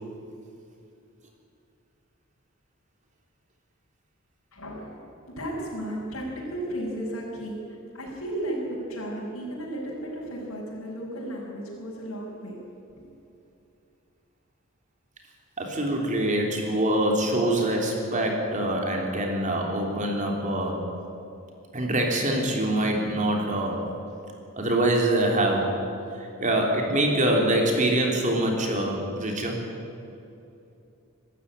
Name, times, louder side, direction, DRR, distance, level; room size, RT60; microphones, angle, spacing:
voice 1, 4.5-12.6 12.9-13.1, right 1 dB, 75° left, -6 dB, 5.4 m, -34 dB
voice 2, 15.6-20.8 21.7-23.9 24.6-25.8 26.1-29.6, right 1 dB, 35° right, 1 dB, 3.5 m, -24 dB
23.5 x 12.5 x 10.0 m, 2.7 s
head